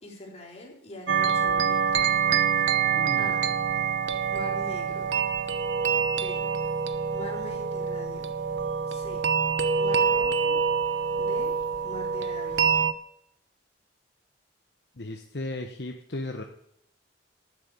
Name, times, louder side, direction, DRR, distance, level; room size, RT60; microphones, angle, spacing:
voice 1, 0.0-2.1 3.1-3.5 4.3-5.1 6.1-6.5 7.1-8.3 8.9-9.2 9.8-10.6 11.2-11.5 11.8-12.8, left 2 dB, 35° left, -1 dB, 3.6 m, -42 dB
sound 1, 1.1-12.9, right 6 dB, 85° right, 0.9 m, -26 dB
voice 2, 2.9-3.4 15.0-16.4, left 2 dB, 60° left, 4 dB, 1.0 m, -35 dB
12.5 x 6.8 x 9.4 m, 0.71 s
head